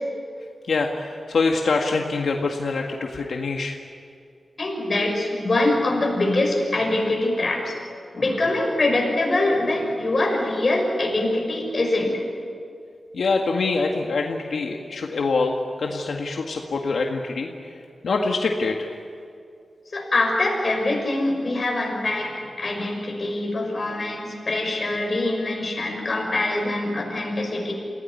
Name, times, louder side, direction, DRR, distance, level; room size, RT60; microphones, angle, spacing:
voice 1, 0.7-3.8 13.1-17.5 18.0-18.9, left 3 dB, 85° left, 1 dB, 1.8 m, -24 dB
voice 2, 4.6-7.7 8.1-12.2 19.9-27.7, left 2 dB, 40° left, 1 dB, 6.1 m, -24 dB
28.0 x 17.0 x 9.8 m, 2.3 s
wide cardioid pair, 130°, 0 cm